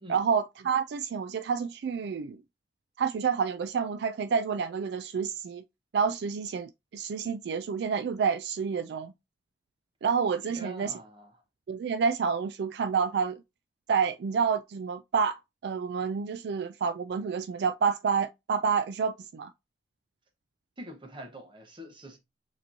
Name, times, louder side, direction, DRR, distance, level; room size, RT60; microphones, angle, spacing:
voice 1, 0.1-2.4 3.0-5.6 5.9-9.1 10.0-11.0 11.7-13.4 13.9-15.4 15.6-19.5, right 6 dB, 65° right, 0.3 m, -29 dB
voice 2, 10.5-11.3 20.8-22.2, equal, 30° right, 1.1 m, -45 dB
6.7 x 3.0 x 2.6 m
head